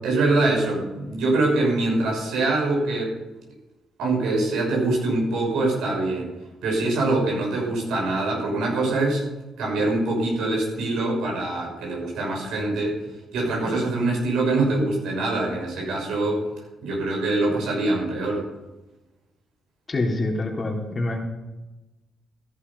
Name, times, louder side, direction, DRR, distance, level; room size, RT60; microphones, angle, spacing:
voice 1, 0.0-3.1 4.0-6.3 6.6-9.2 9.6-13.0 13.3-16.4 16.8-18.5, right 2 dB, 80° right, -1 dB, 6.4 m, -24 dB
voice 2, 19.9-21.2, left 2 dB, 35° left, 0 dB, 3.7 m, -26 dB
15.5 x 11.5 x 5.6 m, 1.1 s
supercardioid pair, 70°, 0 cm